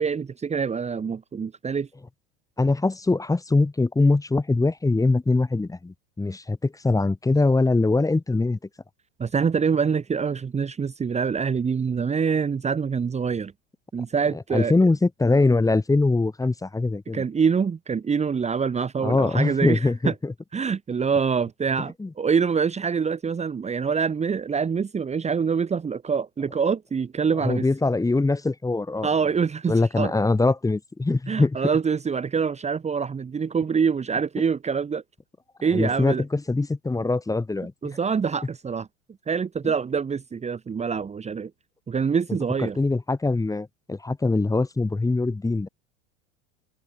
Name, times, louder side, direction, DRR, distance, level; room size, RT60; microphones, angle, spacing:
voice 1, 0.0-1.9 9.2-13.5 13.9-14.7 17.1-20.1 20.5-27.6 29.0-30.1 31.3-35.0 35.6-36.2 37.8-38.9 39.3-41.5 41.9-42.8, right 6 dB, 15° right, 1.6 m, -25 dB
voice 2, 2.6-8.6 14.5-17.2 19.0-20.3 22.0-22.1 27.4-29.1 29.7-31.6 35.7-38.0 39.6-39.7 42.6-45.7, left 3 dB, 10° left, 2.3 m, -22 dB
figure-of-eight pair, 85°, 37 cm